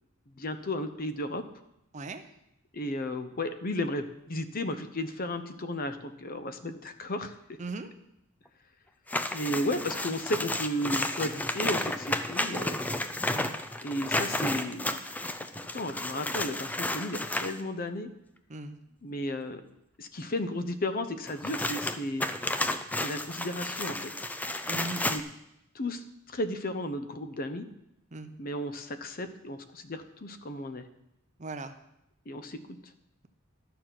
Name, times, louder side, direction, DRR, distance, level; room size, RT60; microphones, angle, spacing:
voice 1, 0.4-1.4 2.7-7.3 9.3-12.7 13.8-14.8 15.7-18.1 19.0-19.6 20.0-22.2 23.0-24.1 25.0-25.2 25.7-26.0 26.3-27.7 28.4-30.9 32.3-32.6, left 1 dB, 40° left, 9 dB, 0.7 m, -34 dB
sound 1, 9.1-17.6 21.3-25.2, left 1 dB, 5° left, 0.4 m, -32 dB
voice 2, 24.7-25.0 28.1-28.3 31.4-31.7, right 2 dB, 35° right, 8 dB, 0.7 m, -38 dB
11.5 x 6.9 x 5.9 m, 0.82 s
head